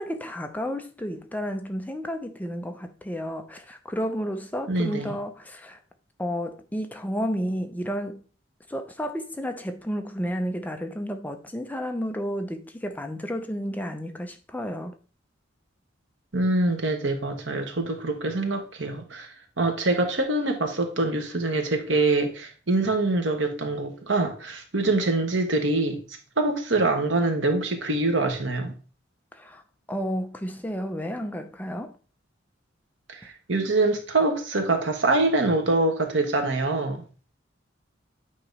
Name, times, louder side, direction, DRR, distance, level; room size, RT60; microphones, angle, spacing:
voice 1, 0.0-5.8 6.2-8.2 8.7-14.9 29.3-29.6 29.9-32.0, equal, 10° left, 0.6 m, -31 dB
voice 2, 4.7-5.1 16.3-19.3 19.6-26.0 26.4-28.7 33.1-37.0, right 2 dB, 80° right, 1.5 m, -24 dB
8.6 x 3.0 x 5.4 m
head